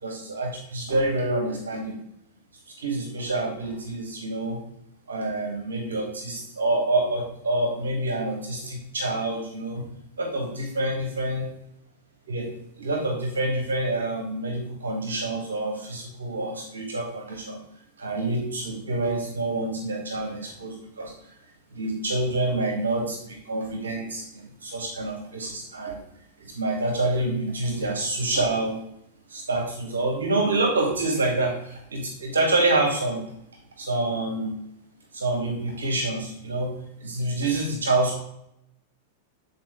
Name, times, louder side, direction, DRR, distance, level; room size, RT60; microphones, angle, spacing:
voice 1, 0.0-2.0 2.7-4.6 5.1-9.9 10.2-11.5 12.3-12.5 12.8-17.6 18.0-21.1 21.7-26.0 26.4-28.8 29.3-33.2 33.8-34.6 35.1-38.2, right 2 dB, 80° right, 2 dB, 1.1 m, -27 dB
7.8 x 4.2 x 3.3 m, 0.78 s
hypercardioid pair, 95°, 0 cm